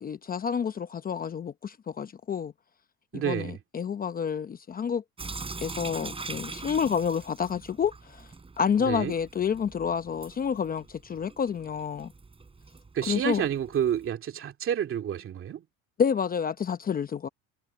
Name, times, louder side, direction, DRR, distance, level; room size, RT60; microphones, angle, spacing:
voice 1, 0.0-2.5 3.1-5.0 5.6-8.3 8.6-12.1 13.1-13.4 16.0-17.3, left 7 dB, 25° left, 0.8 m, -29 dB
voice 2, 3.1-3.6 8.8-9.1 12.9-15.6, right 9 dB, 40° right, 2.5 m, -29 dB
Sink (filling or washing) / Drip, 5.2-14.1, right 4 dB, 15° right, 7.7 m, -43 dB
cardioid pair, 130°, 33 cm